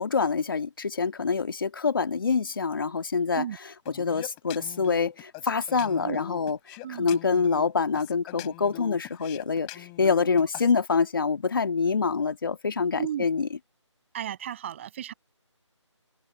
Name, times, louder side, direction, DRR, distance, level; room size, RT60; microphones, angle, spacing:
voice 1, 0.0-3.4 3.9-13.5, left 5 dB, 45° left, 2.2 m, -26 dB
sound 1, 3.9-10.7, left 35 dB, 15° left, 7.5 m, -41 dB
voice 2, 6.8-7.2 13.0-13.2 14.1-15.1, right 10 dB, 25° right, 7.3 m, -33 dB
figure-of-eight pair, 160°, 16 cm